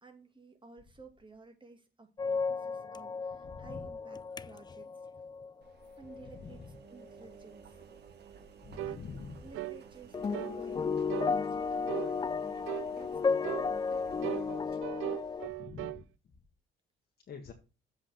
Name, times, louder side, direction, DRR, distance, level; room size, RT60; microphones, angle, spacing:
voice 1, 0.0-4.9 6.0-7.8 8.8-9.1 9.4-15.0, right 3 dB, 25° right, 5 dB, 2.4 m, -55 dB
sound 1, 2.2-6.5 7.0-7.3 10.1-15.5, left 5 dB, 20° left, 0.4 m, -34 dB
voice 2, 3.4-3.8 6.2-6.7 8.6-9.4 15.4-16.1 17.3-17.5, left 5 dB, 55° left, 2 dB, 1.7 m, -46 dB
Engine, 5.6-15.6, right 6 dB, 60° right, 2.0 m, -54 dB
sound 2, 8.8-9.0 9.5-9.8 10.3-10.6 11.1-11.3 11.9-12.1 12.7-12.9 13.4-13.7 14.2-16.0, right 15 dB, 90° right, 0.4 m, -38 dB
7.8 x 4.9 x 5.9 m, 0.30 s
cardioid pair, 90°, 20 cm